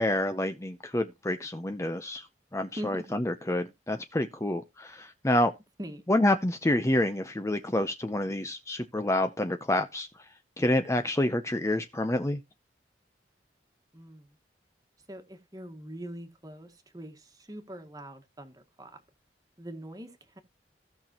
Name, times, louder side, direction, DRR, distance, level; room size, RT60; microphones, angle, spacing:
voice 1, 0.0-2.3 2.5-5.5 6.1-10.1 10.6-12.4, left 1 dB, 15° left, 0.5 m, -28 dB
voice 2, 2.8-3.2 5.8-6.0 13.9-14.4 15.1-19.0 19.6-20.4, equal, 20° right, 1.5 m, -42 dB
16.5 x 5.9 x 2.9 m
head